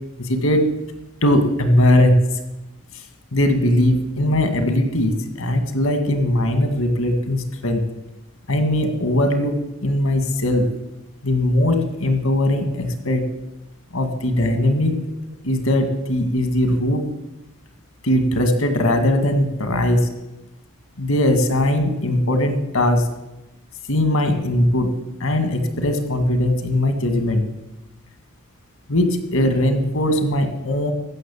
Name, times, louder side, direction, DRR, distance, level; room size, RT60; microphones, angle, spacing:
voice 1, 0.2-0.6 1.2-2.2 2.9-3.0 3.3-7.9 8.5-10.7 11.2-13.2 13.9-14.9 15.4-17.0 18.0-20.1 21.0-23.1 23.9-24.9 25.2-27.4 28.9-30.9, left 1 dB, 80° left, 7 dB, 1.9 m, -19 dB
14.5 x 6.4 x 8.4 m, 0.97 s
head